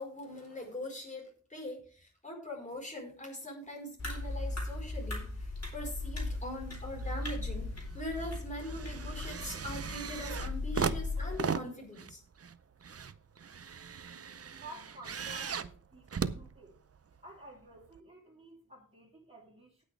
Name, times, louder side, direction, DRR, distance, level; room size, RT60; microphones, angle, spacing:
voice 1, 0.0-7.7 7.9-12.2, left 1 dB, 25° left, 4.7 m, -42 dB
sound 1, 4.0-11.4, left 2 dB, 55° left, 4.0 m, -38 dB
sound 2, 6.7-7.4 7.8-17.2 17.9-18.0, right 6 dB, 50° right, 0.6 m, -38 dB
voice 2, 14.5-16.7 17.2-19.8, right 1 dB, 20° right, 3.7 m, -52 dB
18.0 x 6.4 x 3.4 m
wide cardioid pair, 90°, 31 cm